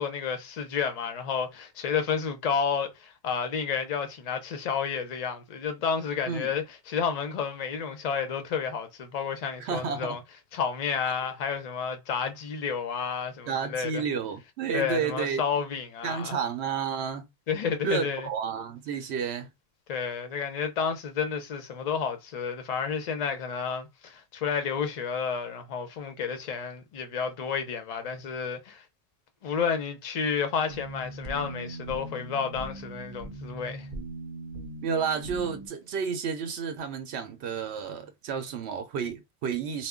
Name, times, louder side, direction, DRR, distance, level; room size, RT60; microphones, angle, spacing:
voice 1, 0.0-10.2 10.5-14.0 14.7-16.4 17.5-18.3 19.9-28.8 29.4-33.9, left 6 dB, 45° left, 0.6 m, -31 dB
voice 2, 9.6-10.2 13.5-15.4 16.0-17.3 17.8-19.5 34.8-39.9, right 6 dB, 90° right, 0.9 m, -31 dB
sound 1, 30.7-35.7, right 2 dB, 55° right, 0.7 m, -40 dB
2.1 x 2.1 x 3.5 m
omnidirectional pair, 1.1 m